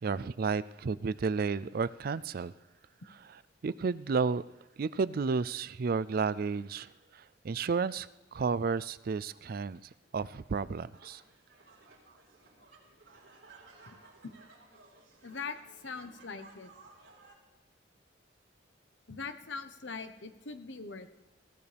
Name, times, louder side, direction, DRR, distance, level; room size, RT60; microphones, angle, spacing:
voice 1, 0.0-2.5 3.3-4.4 4.8-9.8 10.1-11.2, right 5 dB, 55° right, 17 dB, 0.4 m, -32 dB
sound 1, 10.9-17.3, right 3 dB, 85° right, 4.7 m, -58 dB
voice 2, 13.9-14.3 15.2-15.6 15.8-16.7 19.1-21.1, left 4 dB, 80° left, 9 dB, 1.2 m, -42 dB
19.5 x 16.5 x 3.5 m, 1.1 s
head